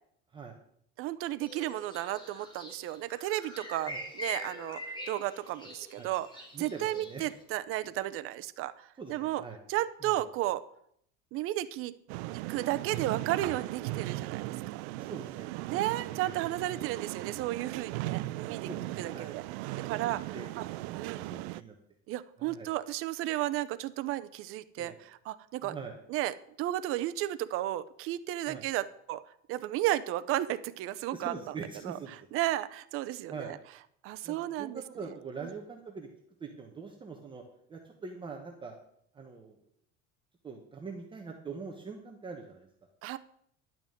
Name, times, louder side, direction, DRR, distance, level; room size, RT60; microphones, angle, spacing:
voice 1, 1.0-6.3 6.6-8.7 9.1-9.4 9.7-10.6 11.3-12.0 12.3-14.5 15.7-18.7 19.0-19.4 19.8-20.2 20.6-20.7 20.9-21.2 22.1-25.8 26.1-29.2 29.5-31.3 31.8-32.0 32.3-33.6 34.0-34.8 43.0-43.2, right 14 dB, 45° right, 14 dB, 0.7 m, -33 dB
sound 1, 1.4-7.4, equal, 15° left, 2.2 m, -44 dB
voice 2, 6.5-7.2 9.0-9.6 10.0-10.2 15.0-15.8 16.1-16.3 18.7-19.3 19.7-20.5 21.1-21.7 22.4-22.7 24.7-25.0 25.6-25.9 28.5-28.6 31.1-32.1 33.3-33.5 34.2-36.1 36.4-37.4 37.7-38.8 39.1-39.5 40.4-42.7, right 5 dB, 15° right, 2 dB, 1.1 m, -43 dB
sound 2, 12.1-21.6, right 18 dB, 80° right, 0.6 m, -38 dB
11.0 x 6.1 x 8.9 m, 0.69 s
cardioid pair, 160°, 32 cm